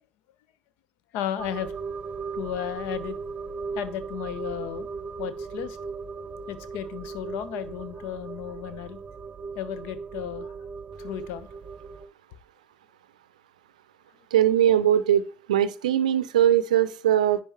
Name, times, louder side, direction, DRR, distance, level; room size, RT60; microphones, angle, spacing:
voice 1, 1.1-1.7 2.3-3.2 3.7-4.9 5.2-5.8 6.5-9.0 9.5-10.5 11.0-11.5, left 10 dB, 60° left, 14 dB, 0.8 m, -34 dB
sound 1, 1.4-12.1, right 5 dB, 25° right, 0.9 m, -37 dB
voice 2, 14.3-15.2 15.5-17.4, right 10 dB, 75° right, 15 dB, 0.5 m, -20 dB
10.0 x 4.8 x 2.9 m, 0.42 s
figure-of-eight pair, 60°, 4 cm